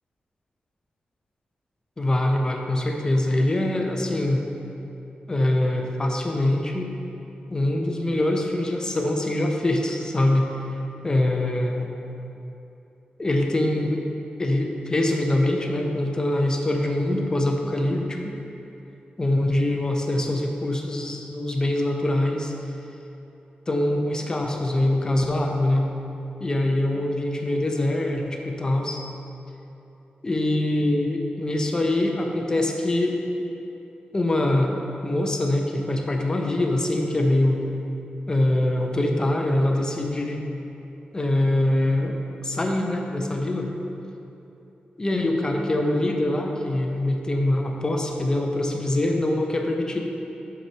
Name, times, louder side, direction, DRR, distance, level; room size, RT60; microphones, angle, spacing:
voice 1, 2.0-4.4 5.3-6.9 7.5-10.8 11.0-11.9 13.2-14.0 14.4-18.3 19.2-22.5 23.7-25.9 26.4-29.0 30.2-33.2 34.1-34.7 35.0-37.6 38.3-40.5 41.1-42.2 42.4-43.7 45.0-50.0, left 1 dB, 20° left, 2 dB, 0.6 m, -23 dB
6.0 x 5.7 x 4.4 m, 2.9 s
wide cardioid pair, 135°, 3 cm